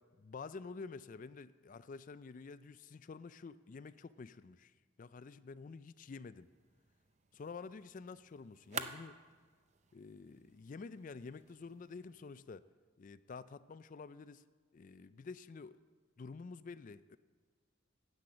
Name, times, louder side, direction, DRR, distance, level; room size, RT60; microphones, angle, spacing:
voice 1, 0.2-6.5 7.3-9.2 9.9-12.7 13.0-14.4 14.7-15.7 16.2-17.2, left 4 dB, 40° left, 14 dB, 0.3 m, -49 dB
sound 1, 6.4-12.3, right 6 dB, 35° right, 0.5 m, -50 dB
9.9 x 8.5 x 7.7 m, 1.5 s
head